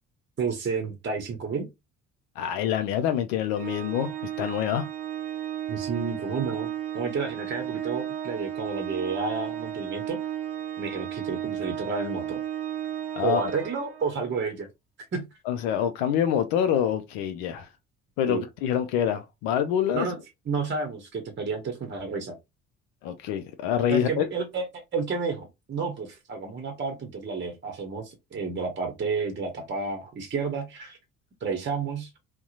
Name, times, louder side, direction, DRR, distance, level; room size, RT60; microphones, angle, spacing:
voice 1, 0.4-1.7 5.7-10.2 10.8-12.4 13.2-14.7 15.1-15.3 18.3-18.4 19.9-20.2 20.5-22.4 23.9-31.0 31.4-32.1, right 4 dB, 30° right, 0.8 m, -31 dB
voice 2, 2.4-4.1 4.4-4.9 13.2-13.4 15.5-17.7 18.2-20.1 23.0-24.3, left 9 dB, 70° left, 0.5 m, -26 dB
Organ, 3.5-14.3, right 10 dB, 80° right, 0.6 m, -34 dB
2.7 x 2.1 x 2.4 m
hypercardioid pair, 50°, 35 cm